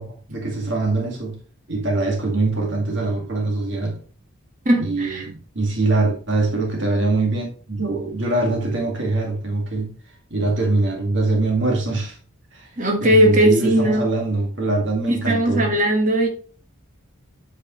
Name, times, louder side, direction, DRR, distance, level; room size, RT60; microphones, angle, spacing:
voice 1, 0.0-1.4 1.7-4.0 4.8-9.9 10.3-12.2 12.5-12.7 13.0-15.7, right 2 dB, 55° right, 2.0 m, -23 dB
voice 2, 4.6-5.3 12.8-14.1 15.1-16.3, right 1 dB, 35° right, 1.6 m, -18 dB
8.0 x 6.5 x 3.1 m
head